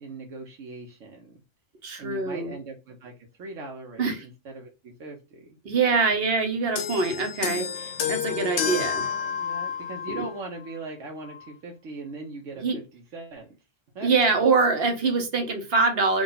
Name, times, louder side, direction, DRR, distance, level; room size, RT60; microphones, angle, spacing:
voice 1, 0.0-1.4 2.0-4.2 4.4-5.6 7.5-7.7 8.0-13.6 13.9-14.3, right 3 dB, 70° right, 1.2 m, -40 dB
voice 2, 1.8-2.6 4.0-4.2 5.6-9.1 10.1-10.2 12.6-12.8 14.0-16.2, right 4 dB, 50° right, 1.0 m, -24 dB
sound 1, 6.8-10.4 11.3-11.4, left 8 dB, 65° left, 0.9 m, -30 dB
3.7 x 2.4 x 3.8 m
omnidirectional pair, 1.4 m